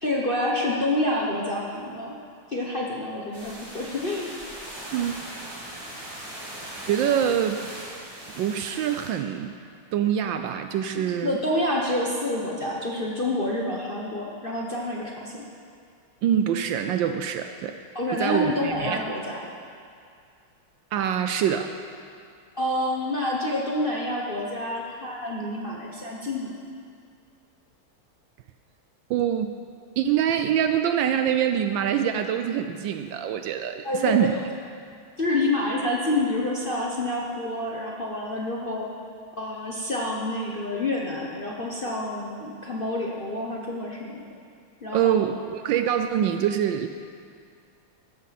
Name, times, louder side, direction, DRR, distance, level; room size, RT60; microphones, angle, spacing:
voice 1, 0.0-2.2 2.5-4.3 11.2-15.4 17.9-19.4 22.5-26.5 33.8-34.3 35.2-38.9 39.3-44.2 44.8-45.3, left 1 dB, 35° left, -3 dB, 0.9 m, -28 dB
sound 1, 3.3-9.1, right 1 dB, 25° right, 3.9 m, -39 dB
voice 2, 4.9-5.2 6.9-7.6 8.4-9.6 9.9-11.4 16.2-17.8 18.1-19.0 20.9-21.7 29.1-29.5 30.0-34.3 44.9-46.9, right 9 dB, 75° right, 7 dB, 1.2 m, -25 dB
13.5 x 13.0 x 4.1 m, 2.3 s
omnidirectional pair, 2.3 m